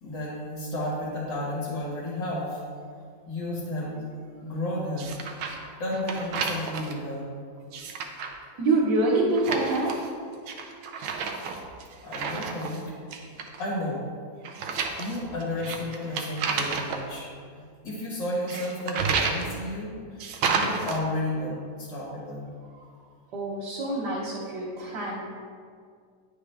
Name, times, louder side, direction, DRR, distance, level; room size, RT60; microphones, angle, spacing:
voice 1, 0.0-2.6 3.3-4.1 4.4-5.2 5.8-7.3 12.0-12.8 13.6-14.0 14.7-22.5, left 1 dB, 70° left, -5 dB, 2.1 m, -32 dB
sound 1, 5.0-5.7 5.9-6.9 7.6-8.4 9.3-10.1 10.5-12.8 13.1-13.6 14.4-17.0 18.5-19.5 20.2-21.0, right 5 dB, 80° right, 1.4 m, -31 dB
voice 2, 8.6-10.0 23.3-25.2, right 2 dB, 65° right, -8 dB, 1.6 m, -26 dB
9.6 x 4.8 x 3.4 m, 2.1 s
omnidirectional pair, 2.1 m